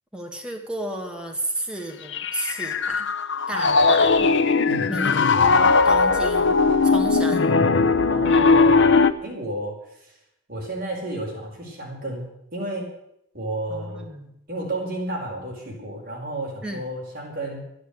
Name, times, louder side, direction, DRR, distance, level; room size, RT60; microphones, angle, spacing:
voice 1, 0.1-3.1 3.5-4.3 4.9-6.6 6.8-7.5 13.7-14.3 16.6-16.8, right 1 dB, 5° right, 1 dB, 1.9 m, -32 dB
Piano, 2.1-9.1, left 4 dB, 65° left, 0.8 m, -19 dB
voice 2, 8.1-10.1 10.5-12.9 13.3-14.0 14.5-17.6, right 1 dB, 50° right, -2 dB, 4.9 m, -32 dB
13.0 x 11.5 x 8.0 m, 0.78 s
head